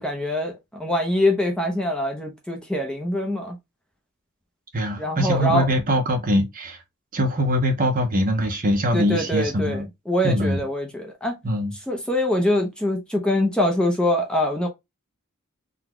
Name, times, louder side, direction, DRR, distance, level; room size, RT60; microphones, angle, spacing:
voice 1, 0.0-3.6 5.0-5.7 8.9-11.4 11.9-14.7, left 1 dB, 5° left, 0.6 m, -24 dB
voice 2, 4.7-6.8 7.1-9.9 10.2-10.6 11.4-11.7, equal, 40° right, 0.8 m, -22 dB
3.9 x 2.2 x 2.9 m
head